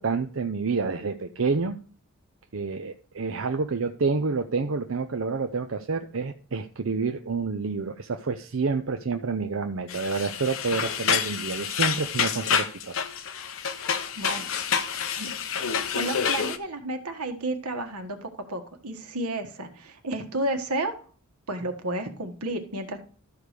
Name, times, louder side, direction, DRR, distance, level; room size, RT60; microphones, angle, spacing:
voice 1, 0.0-1.8 2.5-12.9, right 4 dB, 60° right, 6 dB, 0.6 m, -28 dB
sound 1, 9.9-16.6, left 7 dB, 65° left, 0.9 m, -28 dB
voice 2, 14.2-14.5 15.2-15.3 15.9-20.9 21.5-23.0, right 1 dB, 85° right, 5 dB, 1.6 m, -31 dB
13.0 x 4.8 x 5.1 m, 0.41 s
head